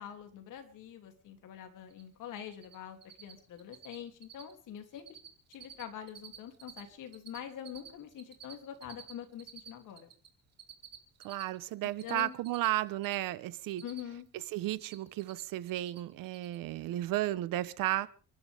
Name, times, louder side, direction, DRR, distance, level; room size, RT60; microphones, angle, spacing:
voice 1, 0.0-5.2 5.5-10.1 12.0-12.4 13.8-14.3, left 9 dB, 70° left, 3.0 m, -45 dB
Cricket, 1.9-2.0 2.3-2.7 3.0-3.3 3.6-4.0 4.2-4.5 4.8-5.3 5.5-6.8 7.1-10.3 10.6-13.2 13.5-14.3 14.5-15.4 15.7-16.0 16.3-16.6, right 8 dB, 50° right, 3.3 m, -50 dB
voice 2, 11.2-13.8 14.5-18.1, right 15 dB, 85° right, 1.1 m, -33 dB
30.0 x 11.5 x 3.5 m
cardioid pair, 135°, 32 cm